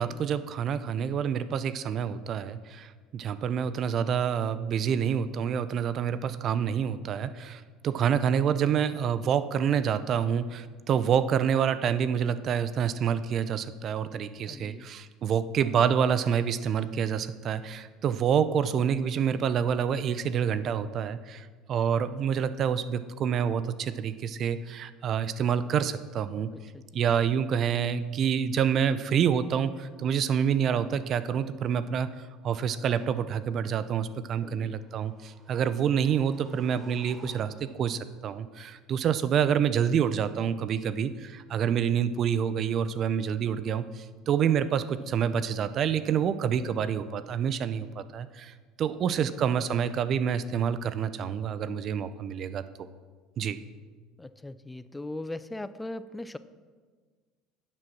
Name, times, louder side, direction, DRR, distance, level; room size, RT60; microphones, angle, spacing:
voice 1, 0.0-26.5 26.9-52.6 53.4-53.6, right 8 dB, 50° right, 14 dB, 0.6 m, -27 dB
voice 2, 14.5-14.9 26.5-27.0 34.4-34.8 49.0-49.3 54.2-56.4, left 1 dB, 10° left, 14 dB, 0.4 m, -40 dB
sound 1, 34.7-37.9, right 3 dB, 30° right, 1.6 m, -54 dB
10.5 x 7.7 x 6.0 m, 1.5 s
hypercardioid pair, 85°, 0 cm